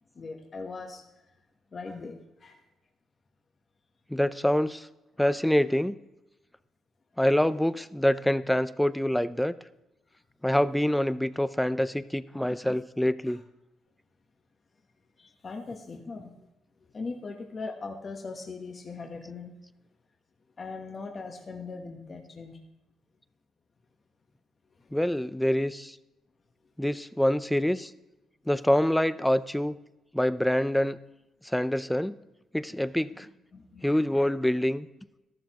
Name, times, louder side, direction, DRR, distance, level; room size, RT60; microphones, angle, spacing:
voice 1, 0.2-1.0 1.7-2.2 2.4-2.5 13.3-13.4 15.4-16.3 16.9-19.5 20.6-22.6 25.1-25.2 33.5-34.2, left 4 dB, 40° left, 2 dB, 1.2 m, -39 dB
voice 2, 4.1-4.9 5.2-5.9 7.2-9.5 10.4-13.4 24.9-25.9 26.8-27.9 28.5-29.8 30.1-31.0 31.5-32.1 32.5-33.3 33.8-34.9, left 1 dB, 5° left, 15 dB, 0.5 m, -25 dB
13.5 x 12.0 x 3.0 m, 0.97 s
cardioid pair, 90°, 0 cm